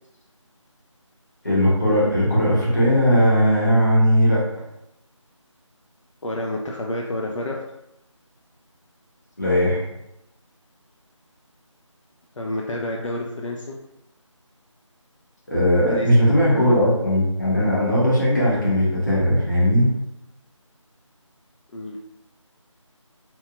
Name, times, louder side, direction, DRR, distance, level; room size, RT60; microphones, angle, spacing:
voice 1, 1.4-4.4 9.4-9.8 15.5-19.9, equal, 35° left, -6 dB, 0.8 m, -18 dB
voice 2, 6.2-7.6 12.4-13.8 15.8-17.0 21.7-22.0, left 1 dB, 70° left, -1 dB, 0.4 m, -29 dB
2.9 x 2.2 x 2.2 m, 0.86 s
figure-of-eight pair, 175°, 17 cm